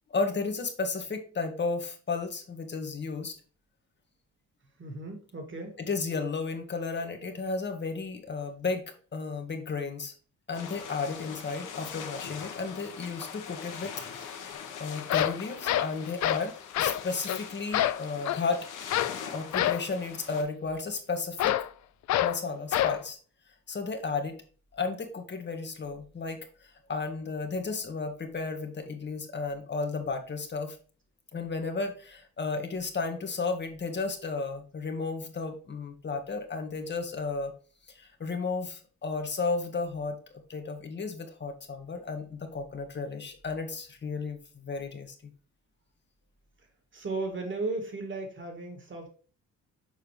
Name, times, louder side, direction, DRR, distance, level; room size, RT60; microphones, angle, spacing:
voice 1, 0.1-3.3 5.9-10.1 10.5-14.5 14.8-18.7 19.3-21.5 22.2-23.2 23.7-24.4 24.7-26.4 26.9-30.8 31.3-37.5 37.9-40.2 40.5-45.1, left 4 dB, 35° left, 5 dB, 1.6 m, -33 dB
voice 2, 4.8-5.8 46.9-49.1, right 3 dB, 40° right, 4 dB, 2.5 m, -35 dB
sound 1, 10.5-20.4, left 7 dB, 85° left, 1.5 m, -42 dB
sound 2, 14.5-14.6 15.0-16.5 16.7-17.0 17.3-17.4 17.7-18.5 18.9-19.2 19.5-19.9 21.4-21.7 22.1-22.4 22.7-23.0, left 12 dB, 65° left, 0.6 m, -27 dB
6.9 x 4.8 x 3.3 m, 0.39 s
cardioid pair, 90°, 30 cm